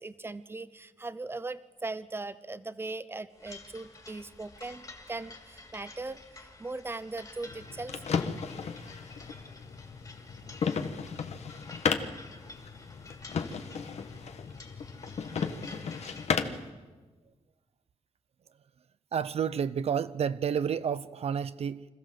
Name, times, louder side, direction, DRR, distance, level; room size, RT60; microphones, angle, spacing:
voice 1, 0.0-8.0, right 3 dB, 20° right, 15 dB, 0.9 m, -39 dB
sound 1, 3.3-16.3, left 3 dB, 30° left, 2.9 m, -50 dB
sound 2, 7.5-16.7, left 6 dB, 75° left, 1.4 m, -34 dB
voice 2, 19.1-21.9, right 7 dB, 65° right, 14 dB, 0.6 m, -30 dB
26.0 x 14.5 x 7.7 m, 1.3 s
wide cardioid pair, 105°, 11 cm